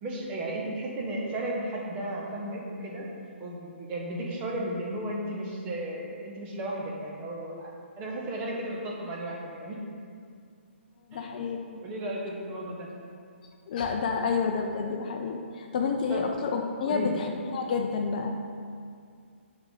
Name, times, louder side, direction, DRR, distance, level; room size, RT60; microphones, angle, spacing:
voice 1, 0.0-3.1 3.4-9.8 11.1-11.5 11.8-12.9 16.1-16.3 16.9-17.2, right 1 dB, 20° right, -3 dB, 1.2 m, -34 dB
voice 2, 11.1-11.8 13.7-18.4, left 5 dB, 40° left, 4 dB, 0.5 m, -29 dB
6.1 x 5.1 x 5.4 m, 2.3 s
hypercardioid pair, 150°, 7 cm